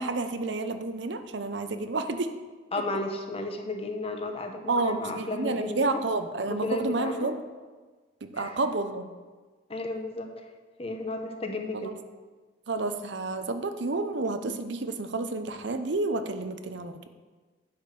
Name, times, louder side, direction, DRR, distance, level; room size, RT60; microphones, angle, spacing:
voice 1, 0.0-2.3 4.7-7.4 8.2-9.1 11.7-11.9 12.7-17.1, right 3 dB, 70° right, 8 dB, 0.7 m, -30 dB
voice 2, 2.7-6.0 6.5-7.3 8.4-8.6 9.7-10.4 10.8-11.9, left 2 dB, 30° left, 4 dB, 0.9 m, -33 dB
10.5 x 5.2 x 6.7 m, 1.4 s
head